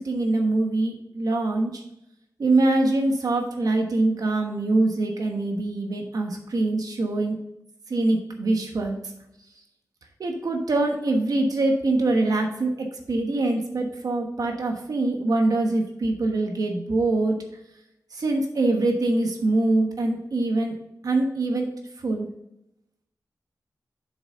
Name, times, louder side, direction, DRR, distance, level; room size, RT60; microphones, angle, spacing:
voice 1, 0.0-1.8 2.4-7.4 7.9-9.0 10.2-17.4 18.1-20.8 21.0-21.7 22.0-22.3, right 2 dB, 70° right, 3 dB, 1.2 m, -24 dB
7.4 x 6.0 x 3.8 m, 0.82 s
wide cardioid pair, 125°, 7 cm